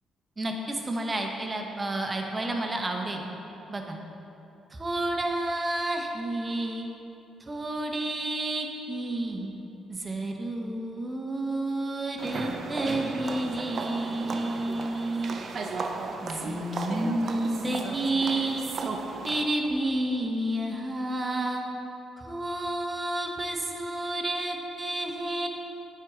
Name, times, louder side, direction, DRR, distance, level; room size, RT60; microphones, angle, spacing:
voice 1, 0.4-3.2 3.7-4.0 4.7-6.9 7.4-9.5 9.9-15.4 16.2-18.7 19.2-21.6 22.2-25.5, right 1 dB, 25° right, 2 dB, 0.8 m, -30 dB
sound 1, 12.2-19.4, right 4 dB, 50° right, 0.5 m, -35 dB
8.9 x 4.6 x 3.6 m, 2.9 s
cardioid pair, 90°, 0 cm